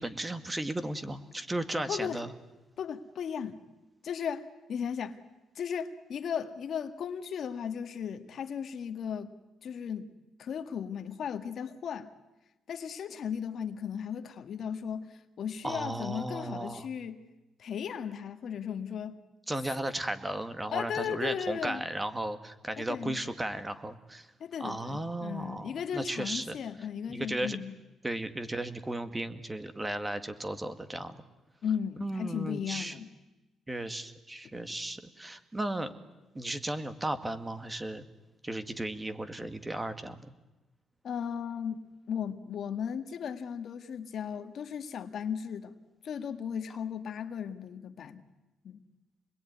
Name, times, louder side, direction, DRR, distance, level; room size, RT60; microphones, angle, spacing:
voice 1, 0.0-2.3 15.6-16.9 19.5-24.3 24.6-26.6 27.1-27.6 28.0-31.2 32.0-33.0 33.7-35.9 36.4-38.0 38.4-40.3, right 1 dB, 15° right, 10 dB, 2.1 m, -35 dB
voice 2, 1.9-2.2 2.8-3.6 4.0-5.2 5.6-9.3 9.6-10.1 10.4-12.1 12.7-17.2 17.6-19.2 20.7-21.8 22.8-23.2 24.4-27.7 31.6-33.1 41.0-41.8 42.1-45.8 46.0-48.2 48.6-48.8, left 7 dB, 60° left, 7 dB, 1.7 m, -36 dB
26.5 x 21.0 x 9.6 m, 1.1 s
cardioid pair, 90°, 0 cm